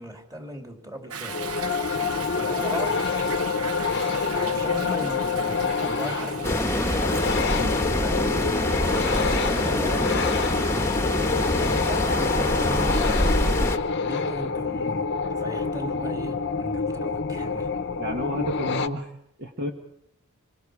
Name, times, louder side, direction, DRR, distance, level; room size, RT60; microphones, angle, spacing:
voice 1, 0.0-1.4 2.3-3.1 4.3-7.0 7.9-8.4 8.9-10.3 11.1-13.7 14.0-15.1 15.4-17.7, equal, 15° right, 2.8 m, -37 dB
Toilet flush / Drip / Trickle dribble, 1.1-11.2, right 6 dB, 85° right, 0.9 m, -39 dB
sound 1, 1.2-18.9, left 5 dB, 50° left, 0.8 m, -27 dB
sound 2, 6.4-13.8, left 1 dB, 10° left, 1.1 m, -25 dB
voice 2, 18.0-19.1 19.4-19.7, equal, 50° right, 1.5 m, -30 dB
26.0 x 23.5 x 4.9 m
head